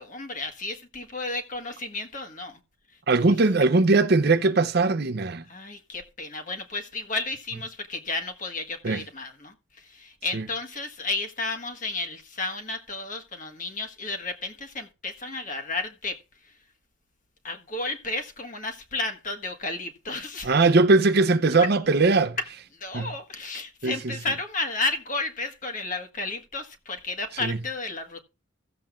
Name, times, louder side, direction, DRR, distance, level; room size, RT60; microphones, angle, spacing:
voice 1, 0.0-2.6 5.5-16.2 17.4-20.5 22.7-28.2, left 3 dB, 40° left, 1.5 m, -32 dB
voice 2, 3.1-5.4 8.8-9.0 10.3-10.4 20.4-22.4 22.9-23.1 23.8-24.1 27.4-27.6, right 3 dB, 50° right, 0.6 m, -20 dB
16.0 x 7.5 x 2.4 m
head